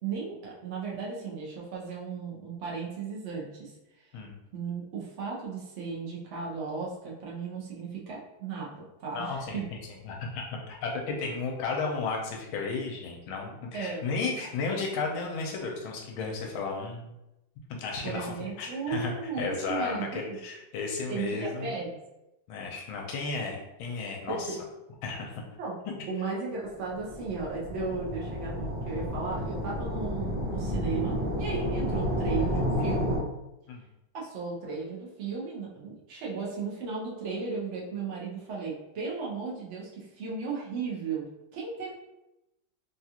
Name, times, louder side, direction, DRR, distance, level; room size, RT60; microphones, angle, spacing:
voice 1, 0.0-3.7 4.5-8.7 9.0-9.7 13.7-14.0 18.0-20.4 21.1-22.0 24.3-24.5 25.6-25.8 26.1-33.1 34.1-41.9, right 5 dB, 75° right, -4 dB, 0.6 m, -35 dB
voice 2, 9.1-9.6 10.0-17.1 17.7-21.8 22.5-24.6 25.0-25.4 25.8-25.9 33.7-33.8, left 4 dB, 80° left, 0 dB, 1.4 m, -33 dB
sound 1, 26.8-33.2, equal, 40° right, 0.9 m, -31 dB
3.7 x 2.4 x 2.8 m, 0.93 s
omnidirectional pair, 2.2 m